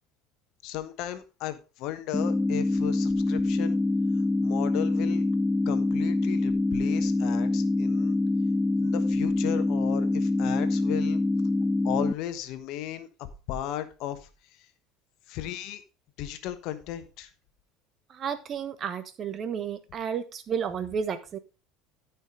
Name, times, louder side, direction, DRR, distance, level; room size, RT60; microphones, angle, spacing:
voice 1, 0.6-3.8 4.4-5.2 5.6-8.2 8.8-11.2 11.8-14.3 15.3-15.8 16.2-17.3, left 12 dB, 55° left, 10 dB, 1.2 m, -35 dB
sound 1, 2.1-12.1, left 2 dB, 10° left, 0.4 m, -25 dB
voice 2, 18.1-21.4, right 7 dB, 40° right, 11 dB, 1.3 m, -32 dB
13.5 x 5.9 x 3.7 m, 0.30 s
figure-of-eight pair, 65°, 0 cm